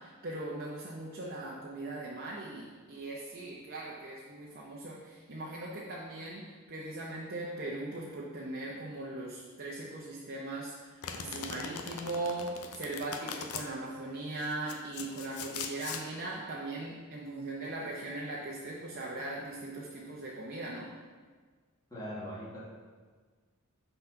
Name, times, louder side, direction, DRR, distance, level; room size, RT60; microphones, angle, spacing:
voice 1, 0.0-6.4 6.7-20.9, right 2 dB, 45° right, -4 dB, 0.8 m, -39 dB
Domestic sounds home sounds, 11.0-13.7 14.4-16.0, left 6 dB, 80° left, 0.6 m, -40 dB
voice 2, 21.9-22.6, equal, 15° left, -9 dB, 1.9 m, -40 dB
5.8 x 4.1 x 5.7 m, 1.5 s
head